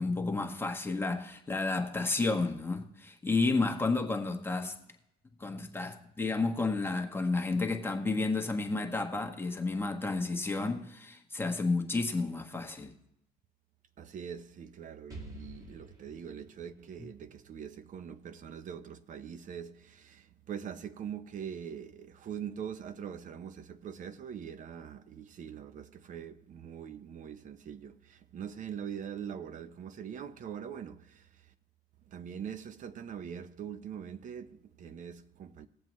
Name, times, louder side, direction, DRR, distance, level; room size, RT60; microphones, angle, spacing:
voice 1, 0.0-4.7 5.4-12.9, left 3 dB, 15° left, 1.2 m, -31 dB
voice 2, 14.0-31.5 32.1-35.7, right 8 dB, 50° right, 0.7 m, -43 dB
Explosion, 15.1-18.9, right 1 dB, 20° right, 1.9 m, -51 dB
19.5 x 7.6 x 3.1 m
cardioid pair, 110°, 17 cm